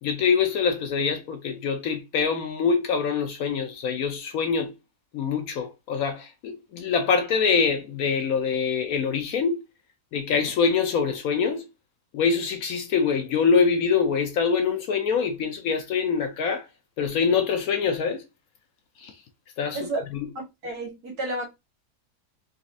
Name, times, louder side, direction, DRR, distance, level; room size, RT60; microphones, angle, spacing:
voice 1, 0.0-4.7 5.1-9.6 10.1-11.7 12.1-16.7 17.0-18.3 19.0-19.2 19.6-20.3, left 6 dB, 70° left, 1.0 m, -24 dB
voice 2, 20.6-21.5, right 2 dB, 70° right, 1.8 m, -30 dB
4.0 x 2.6 x 2.5 m
omnidirectional pair, 1.7 m